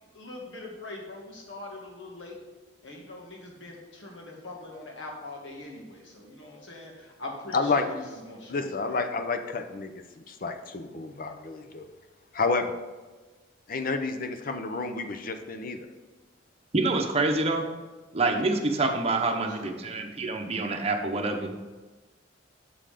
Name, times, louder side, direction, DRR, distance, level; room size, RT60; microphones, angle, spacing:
voice 1, 0.2-2.4 2.8-9.0 19.2-19.7, left 2 dB, 85° left, -2 dB, 2.0 m, -42 dB
voice 2, 7.5-7.9 8.5-9.9 10.2-11.9 12.3-12.7 13.7-15.8, left 4 dB, 50° left, 7 dB, 0.7 m, -30 dB
voice 3, 16.7-17.7 18.1-21.6, right 3 dB, 35° right, 4 dB, 0.8 m, -27 dB
6.9 x 5.6 x 5.0 m, 1.3 s
head